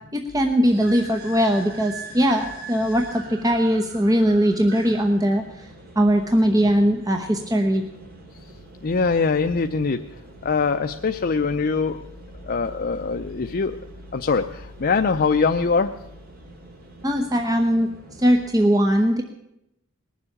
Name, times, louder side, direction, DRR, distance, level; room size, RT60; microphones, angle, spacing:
voice 1, 0.1-5.7 6.0-7.8 17.0-17.9 18.2-19.2, equal, 15° right, 3 dB, 0.9 m, -20 dB
sound 1, 0.6-18.5, right 2 dB, 45° right, 2.6 m, -44 dB
voice 2, 8.8-10.0 10.4-12.0 12.5-13.8 14.1-15.9, left 4 dB, 45° left, 6 dB, 0.6 m, -22 dB
20.0 x 7.3 x 9.9 m, 0.85 s
head